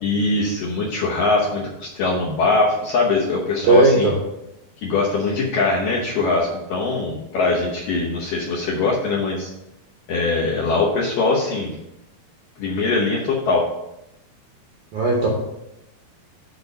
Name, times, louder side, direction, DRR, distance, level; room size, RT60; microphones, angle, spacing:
voice 1, 0.0-4.1 4.8-9.5 10.1-11.8 12.6-13.7, left 3 dB, 70° left, -4 dB, 2.1 m, -22 dB
voice 2, 3.6-4.1 14.9-15.3, right 3 dB, 70° right, -2 dB, 1.8 m, -16 dB
8.1 x 4.4 x 5.3 m, 0.89 s
omnidirectional pair, 5.1 m